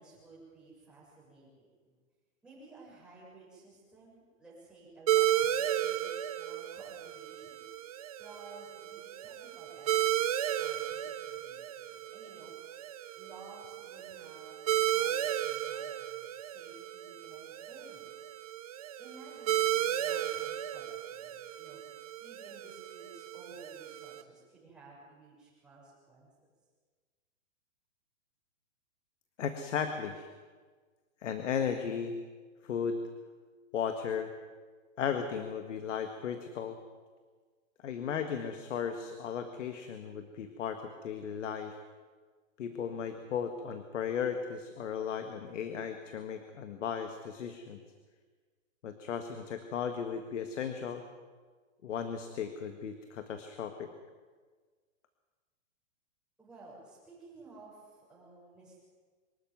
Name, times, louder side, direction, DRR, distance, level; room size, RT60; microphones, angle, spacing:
voice 1, 0.0-1.9 2.4-7.6 8.2-12.5 13.2-18.1 19.0-21.8 22.2-26.3 42.7-43.1 56.4-58.8, right 3 dB, ahead, -7 dB, 6.6 m, -55 dB
sound 1, 5.1-24.2, right 12 dB, 30° right, 0.6 m, -34 dB
voice 2, 29.4-30.3 31.2-32.2 32.6-33.0 33.7-34.3 35.0-36.8 37.8-41.8 42.6-47.8 48.8-51.0 51.8-53.9, left 7 dB, 60° left, 7 dB, 1.8 m, -35 dB
24.0 x 13.5 x 9.5 m, 1.5 s
hypercardioid pair, 170°, 40 cm